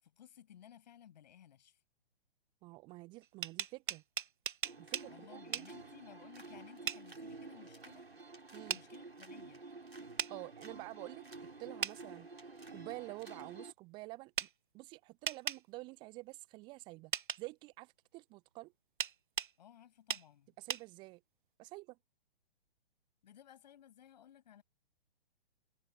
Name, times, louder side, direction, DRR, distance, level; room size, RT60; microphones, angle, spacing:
voice 1, 0.0-1.8 5.1-8.0 8.6-9.6 19.6-20.5 23.2-24.6, left 10 dB, 45° left, 6.8 m, -58 dB
voice 2, 2.6-4.0 4.8-5.9 8.5-8.8 10.3-14.5 14.7-18.7 20.6-21.2 21.6-22.0, right 22 dB, 15° right, 0.8 m, -49 dB
sound 1, 3.2-5.1 5.5-5.7 6.9-7.0 8.7-8.8 10.2-10.3 11.8-12.0 14.4-14.5 15.3-15.6 17.1-17.4 19.0-19.5 20.1-20.3 20.7-20.8, right 8 dB, 55° right, 0.8 m, -37 dB
sound 2, 4.6-13.7, right 3 dB, 80° right, 5.6 m, -51 dB
figure-of-eight pair, 125°, 30 cm